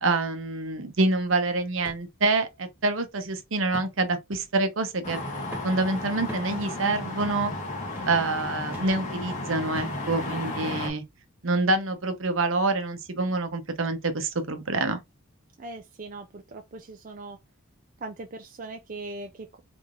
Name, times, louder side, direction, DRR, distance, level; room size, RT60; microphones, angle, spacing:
voice 1, 0.0-5.2 5.6-7.5 8.0-11.0 11.4-15.0, right 3 dB, 65° right, 0.9 m, -26 dB
sound 1, 1.8-2.1 2.5-2.6 3.7-4.0 4.3-4.6 5.5-5.8 6.3-6.6 7.2-7.4 7.9-8.2 8.7-9.0 9.7-10.0 10.7-10.8, equal, 10° right, 1.0 m, -42 dB
sound 2, 5.0-10.9, left 2 dB, 35° left, 1.3 m, -33 dB
voice 2, 15.6-17.4 18.0-19.6, right 2 dB, 40° right, 0.4 m, -40 dB
3.5 x 3.4 x 2.5 m
head